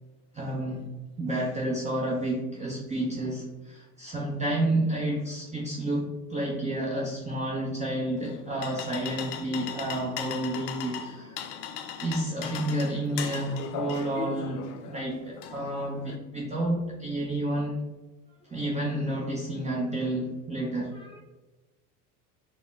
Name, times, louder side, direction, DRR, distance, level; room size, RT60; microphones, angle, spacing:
voice 1, 0.3-0.9 1.2-11.4 12.0-17.8 18.4-20.9, right 1 dB, 15° right, -3 dB, 0.7 m, -30 dB
sound 1, 8.2-16.2, left 8 dB, 50° left, 0.5 m, -38 dB
voice 2, 11.1-11.6 18.3-18.6 20.8-21.2, left 1 dB, 10° left, -1 dB, 1.0 m, -55 dB
4.9 x 2.2 x 3.3 m, 1.1 s
hypercardioid pair, 80°, 46 cm